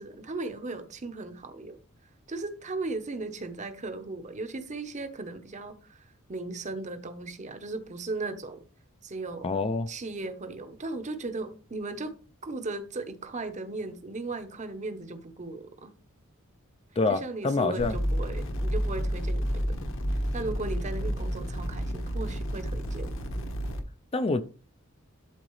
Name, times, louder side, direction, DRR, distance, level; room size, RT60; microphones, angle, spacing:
voice 1, 0.0-1.8 2.3-8.6 9.0-9.5 9.9-12.1 12.4-15.9 17.1-19.8 20.1-23.1, right 3 dB, 35° right, 0.8 m, -37 dB
voice 2, 9.4-9.9 17.0-18.0 24.1-24.4, left 3 dB, 25° left, 0.4 m, -26 dB
sound 1, 17.8-23.8, equal, 60° left, 1.3 m, -30 dB
12.0 x 3.9 x 3.1 m
head